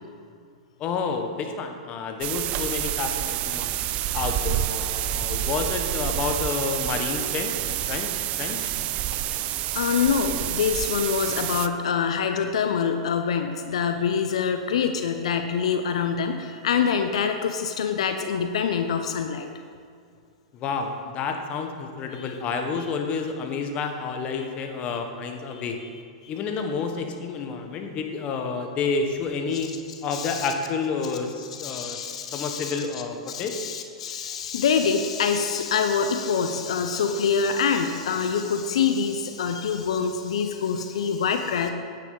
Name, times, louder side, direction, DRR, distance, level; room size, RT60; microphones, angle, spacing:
voice 1, 0.8-3.8 4.1-8.1 8.4-8.7 20.5-25.8 26.3-29.7 30.0-33.5, left 5 dB, 35° left, 5 dB, 1.2 m, -29 dB
sound 1, 2.2-11.7, right 13 dB, 40° right, 0.4 m, -28 dB
voice 2, 9.7-19.5 22.2-22.3 22.8-22.9 24.4-24.5 25.5-25.9 30.1-30.5 31.5-32.8 33.3-41.7, left 6 dB, 70° left, 7 dB, 0.7 m, -25 dB
9.8 x 8.9 x 4.0 m, 2.2 s
hypercardioid pair, 105°, 3 cm